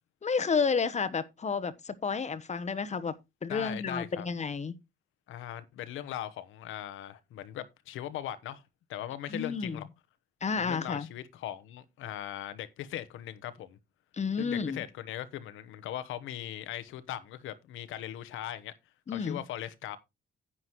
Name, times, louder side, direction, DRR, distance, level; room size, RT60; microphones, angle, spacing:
voice 1, 0.2-3.1 3.4-4.7 9.3-9.8 10.4-11.1 14.1-14.8 19.1-19.4, left 5 dB, 35° left, 1.0 m, -31 dB
voice 2, 3.5-4.3 5.3-8.6 8.9-9.8 10.6-13.8 14.4-18.7 19.1-20.0, left 12 dB, 90° left, 1.1 m, -39 dB
10.0 x 9.3 x 3.1 m
cardioid pair, 90°, 20 cm